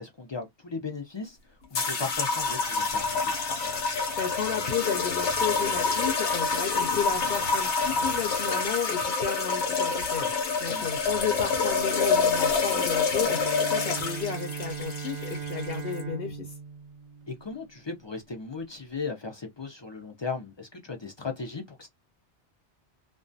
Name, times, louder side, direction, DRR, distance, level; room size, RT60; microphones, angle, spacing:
voice 1, 0.0-3.3 10.7-10.9 17.3-21.9, left 4 dB, 45° left, 0.3 m, -37 dB
sound 1, 1.7-16.0, left 4 dB, 85° left, 1.0 m, -27 dB
voice 2, 4.0-16.5, left 7 dB, 60° left, 0.8 m, -32 dB
Bowed string instrument, 13.1-18.0, right 6 dB, 45° right, 0.4 m, -38 dB
2.3 x 2.2 x 2.6 m
omnidirectional pair, 1.2 m